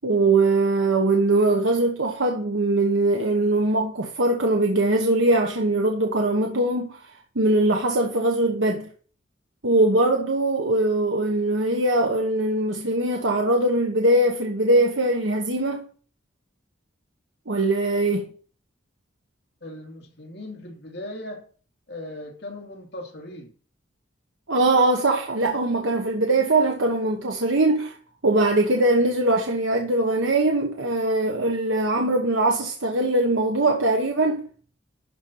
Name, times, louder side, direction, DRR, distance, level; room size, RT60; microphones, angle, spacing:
voice 1, 0.0-7.0 7.3-8.9 9.6-15.8 17.5-18.3 24.5-27.9 28.2-34.4, right 2 dB, 75° right, 1.1 m, -21 dB
voice 2, 19.6-21.4 21.9-23.5, left 1 dB, 55° left, 2.5 m, -38 dB
12.0 x 4.4 x 5.4 m
head